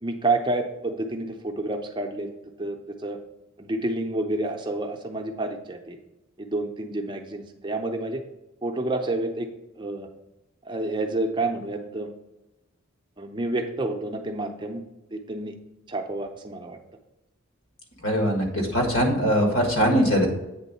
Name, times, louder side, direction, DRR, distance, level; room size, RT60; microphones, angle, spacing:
voice 1, 0.0-2.3 2.6-2.8 3.0-3.2 3.6-6.0 6.4-8.2 8.6-9.5 9.8-10.1 10.7-12.1 13.2-14.8 15.1-15.6 15.9-16.8, right 2 dB, 20° right, 4 dB, 0.5 m, -29 dB
voice 2, 18.0-20.3, equal, 80° left, 2 dB, 1.8 m, -21 dB
8.2 x 3.6 x 5.5 m, 0.96 s
head